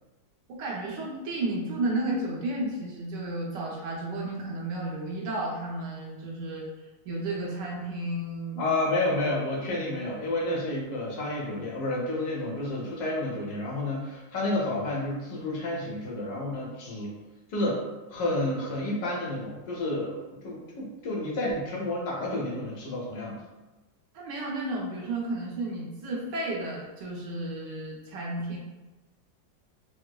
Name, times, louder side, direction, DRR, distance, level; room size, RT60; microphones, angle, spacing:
voice 1, 0.5-6.7 7.0-8.7 9.8-10.1 24.1-28.6, right 2 dB, 70° right, -3 dB, 1.4 m, -32 dB
voice 2, 8.6-17.1 17.5-17.8 18.1-23.4, left 2 dB, 65° left, -3 dB, 1.3 m, -30 dB
4.6 x 2.0 x 2.2 m, 1.1 s
omnidirectional pair, 2.0 m